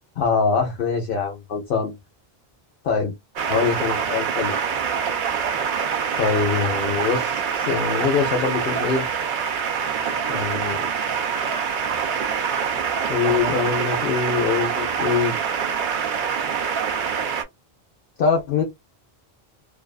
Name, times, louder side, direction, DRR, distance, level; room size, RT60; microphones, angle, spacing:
voice 1, 0.2-2.0 2.8-3.1 3.5-4.5 6.2-9.1 10.3-10.9 12.0-12.3 13.1-15.3 18.2-18.6, left 5 dB, 60° left, 0.8 m, -23 dB
sound 1, 3.4-17.4, right 7 dB, 60° right, 0.6 m, -25 dB
2.5 x 2.3 x 2.3 m
omnidirectional pair, 1.1 m